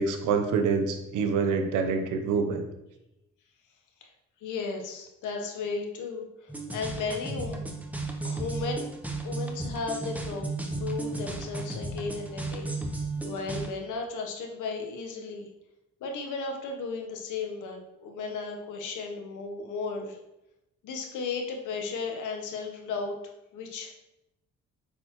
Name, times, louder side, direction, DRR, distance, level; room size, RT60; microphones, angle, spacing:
voice 1, 0.0-2.6, right 5 dB, 90° right, 6 dB, 0.9 m, -26 dB
voice 2, 4.4-7.7 8.2-8.9 9.2-10.5 10.8-15.5 16.0-20.2 20.8-23.1 23.5-23.9, left 4 dB, 80° left, 3 dB, 1.2 m, -35 dB
sound 1, 6.5-13.7, right 3 dB, 5° right, 0.8 m, -34 dB
8.2 x 4.5 x 3.1 m, 0.89 s
cardioid pair, 90°, 30 cm